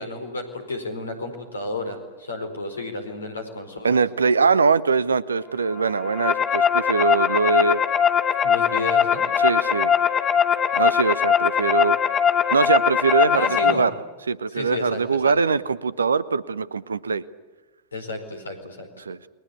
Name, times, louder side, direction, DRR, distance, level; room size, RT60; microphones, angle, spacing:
voice 1, 0.0-4.0 8.4-9.3 13.3-13.9 14.5-15.3 17.9-19.0, left 2 dB, 75° left, 7 dB, 4.7 m, -32 dB
voice 2, 3.8-7.8 9.4-9.9 10.8-12.0 12.5-13.9 14.3-17.2 19.0-19.2, right 5 dB, 75° right, 19 dB, 0.9 m, -22 dB
sound 1, 5.9-13.7, left 8 dB, 25° left, 1.7 m, -21 dB
29.5 x 22.0 x 8.3 m, 1.3 s
figure-of-eight pair, 90°, 0 cm